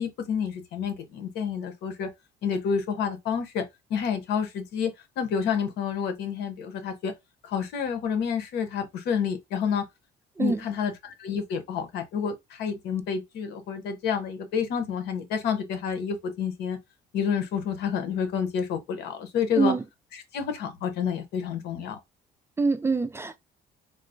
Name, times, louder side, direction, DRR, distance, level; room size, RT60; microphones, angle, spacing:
voice 1, 0.0-2.1 2.4-3.6 3.9-4.9 5.2-7.1 7.4-9.8 10.4-16.8 17.1-19.7 20.1-22.0, left 7 dB, 80° left, 0.9 m, -29 dB
voice 2, 22.6-23.4, right 4 dB, 15° right, 0.3 m, -24 dB
3.9 x 2.0 x 2.5 m
cardioid pair, 110°, 17 cm